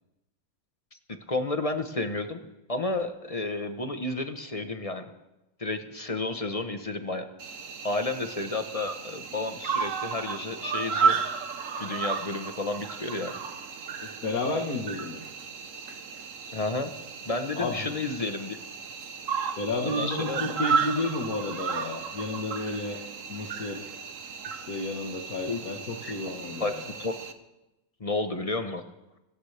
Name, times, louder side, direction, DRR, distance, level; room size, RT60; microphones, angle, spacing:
voice 1, 1.3-2.4 2.7-5.0 5.6-7.2 7.8-11.2 11.8-13.3 16.5-16.9 17.2-18.6 19.8-20.4 25.5-25.6 26.0-27.2 28.0-28.8, left 2 dB, 30° left, 7 dB, 0.9 m, -31 dB
Cricket, 7.4-27.3, right 6 dB, 65° right, 1.3 m, -33 dB
voice 2, 14.0-15.2 17.6-17.9 19.6-23.0 23.3-23.8 24.5-26.9, left 2 dB, 80° left, 2 dB, 1.9 m, -32 dB
26.0 x 13.5 x 3.4 m, 0.97 s
omnidirectional pair, 1.5 m